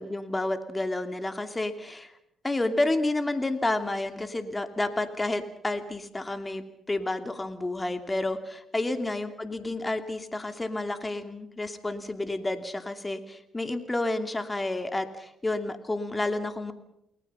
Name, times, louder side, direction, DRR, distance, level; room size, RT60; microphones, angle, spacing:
voice 1, 0.0-2.1 2.4-16.7, left 2 dB, 20° left, 8 dB, 2.7 m, -30 dB
29.5 x 20.5 x 5.6 m, 0.79 s
cardioid pair, 90°, 0 cm